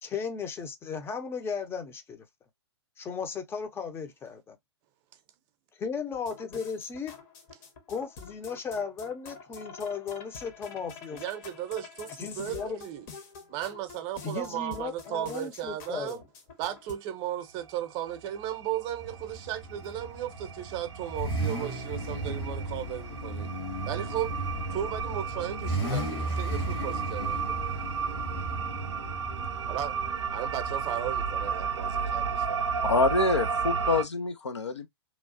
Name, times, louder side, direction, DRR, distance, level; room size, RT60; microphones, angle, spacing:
voice 1, 0.0-2.3 3.0-4.6 5.8-7.1 7.9-11.2 12.1-12.8 14.2-16.2, left 5 dB, 15° left, 0.6 m, -36 dB
sound 1, 6.1-16.9, left 5 dB, 45° left, 1.0 m, -47 dB
voice 2, 11.1-13.1 13.5-16.2 16.6-23.5 23.9-24.3 24.7-27.6 29.7-30.0 30.3-32.6, right 11 dB, 35° right, 0.7 m, -35 dB
sound 2, 17.6-17.8 18.0-34.0, right 6 dB, 85° right, 0.5 m, -34 dB
Car / Idling / Accelerating revving vroom, 19.0-31.1, right 1 dB, 60° left, 1.6 m, -35 dB
voice 3, 32.8-34.9, left 3 dB, 85° left, 0.6 m, -26 dB
2.9 x 2.3 x 2.6 m
figure-of-eight pair, 115°, 14 cm